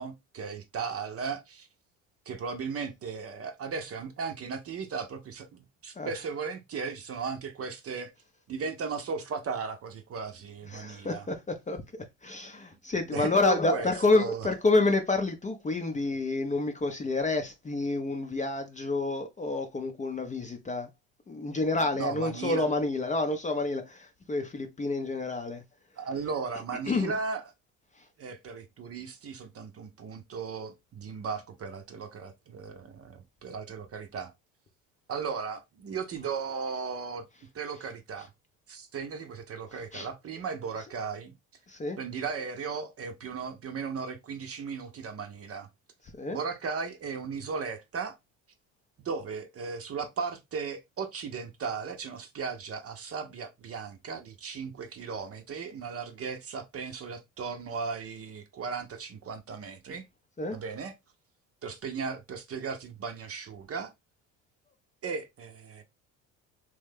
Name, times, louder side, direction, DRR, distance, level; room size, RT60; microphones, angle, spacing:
voice 1, 0.0-1.7 2.3-8.1 8.5-11.3 13.1-14.5 22.0-22.7 26.0-27.4 28.2-34.3 35.1-37.2 37.5-38.3 38.7-41.3 42.0-45.7 46.3-48.2 49.0-60.1 60.5-60.9 61.6-63.9 65.0-65.8, right 5 dB, 35° right, 0.7 m, -36 dB
voice 2, 6.0-6.4 10.6-11.8 12.2-20.9 21.3-25.6 26.0-26.1 26.5-27.2 28.0-28.1 36.2-36.3 37.3-37.4 38.2-38.3 39.7-40.1 40.8-40.9 41.7-42.0 46.2-46.4 60.4-60.6, left 3 dB, 20° left, 0.5 m, -29 dB
3.1 x 2.2 x 3.3 m
hypercardioid pair, 70°, 40 cm